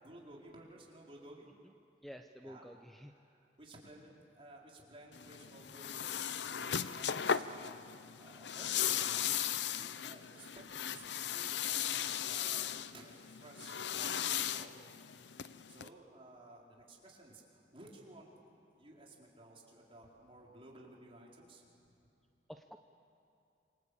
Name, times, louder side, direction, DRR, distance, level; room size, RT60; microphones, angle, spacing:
voice 1, 0.0-1.5 2.4-2.7 3.2-7.8 8.2-9.5 9.8-14.7 15.7-18.3 18.7-21.7 21.9-22.0, right 2 dB, 30° right, -2 dB, 4.6 m, -56 dB
voice 2, 2.0-3.1 22.5-22.8, equal, ahead, 5 dB, 0.8 m, -50 dB
sound 1, 5.1-15.9, left 9 dB, 70° left, 0.7 m, -37 dB
27.5 x 25.5 x 8.5 m, 2.7 s
head